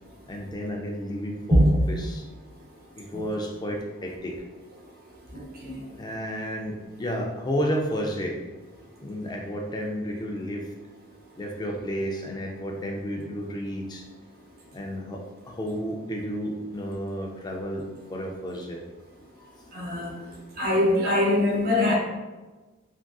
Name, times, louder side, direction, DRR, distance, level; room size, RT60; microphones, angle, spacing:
voice 1, 0.3-1.6 1.9-2.2 3.0-4.4 6.0-8.4 9.0-10.7 11.4-14.0 14.7-18.8, equal, 20° left, 1 dB, 0.3 m, -32 dB
voice 2, 5.3-5.8 19.7-20.1 20.6-21.9, left 1 dB, 45° right, -1 dB, 0.7 m, -22 dB
3.5 x 2.5 x 2.3 m, 1.2 s
head